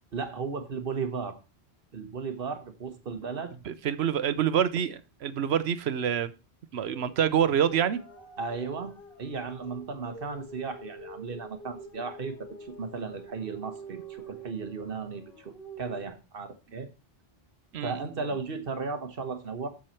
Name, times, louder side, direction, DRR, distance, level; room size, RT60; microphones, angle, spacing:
voice 1, 0.1-1.4 1.9-3.5 8.4-8.9 9.2-16.9 17.8-19.7, right 5 dB, 60° right, 8 dB, 1.4 m, -35 dB
voice 2, 3.7-6.3 6.7-8.0 17.7-18.1, right 9 dB, 80° right, 14 dB, 1.0 m, -26 dB
sound 1, 6.8-16.1, right 2 dB, 55° left, 2.6 m, -46 dB
7.8 x 7.1 x 4.4 m, 0.29 s
omnidirectional pair, 1.1 m